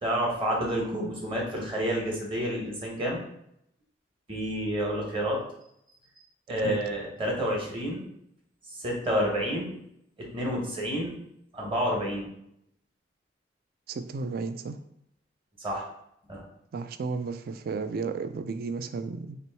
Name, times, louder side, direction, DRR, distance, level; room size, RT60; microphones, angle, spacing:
voice 1, 0.0-3.2 4.3-5.4 6.5-8.1 8.7-9.7 10.2-11.1 11.5-12.3 15.6-15.9 16.3-16.4, equal, 30° right, -1 dB, 1.0 m, -29 dB
voice 2, 13.9-14.8 16.7-19.4, right 4 dB, 55° right, 10 dB, 0.3 m, -33 dB
3.0 x 3.0 x 4.4 m, 0.75 s
head